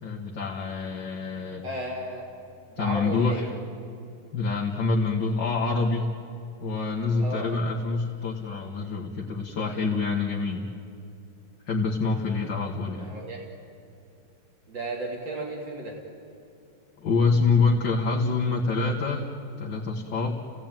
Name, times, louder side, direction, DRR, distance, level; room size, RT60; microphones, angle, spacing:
voice 1, 0.0-1.6 2.8-3.5 4.3-6.1 6.6-10.7 11.7-13.1 17.0-19.3 19.6-20.5, left 4 dB, 70° left, -2 dB, 2.3 m, -26 dB
voice 2, 1.6-2.3 2.7-3.5 7.2-7.5 12.9-13.4 14.7-16.0, right 1 dB, 70° right, -1 dB, 3.3 m, -34 dB
30.0 x 17.5 x 9.0 m, 2.5 s
omnidirectional pair, 2.0 m